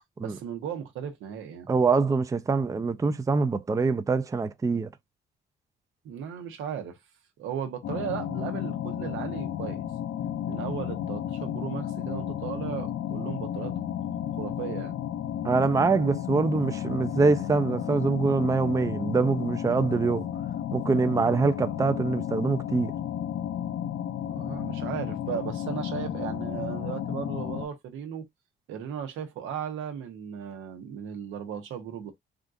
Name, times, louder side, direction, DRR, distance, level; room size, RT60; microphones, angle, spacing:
voice 1, 0.2-1.7 6.0-7.0 7.4-9.8 10.5-13.8 14.4-14.9 24.2-28.2 28.7-32.1, right 8 dB, 90° right, 0.9 m, -36 dB
voice 2, 1.7-4.9 15.4-20.3 20.7-22.9, right 4 dB, 15° right, 0.4 m, -24 dB
sound 1, 7.8-27.6, left 10 dB, 70° left, 0.6 m, -33 dB
3.6 x 2.4 x 2.5 m
cardioid pair, 90°, 20 cm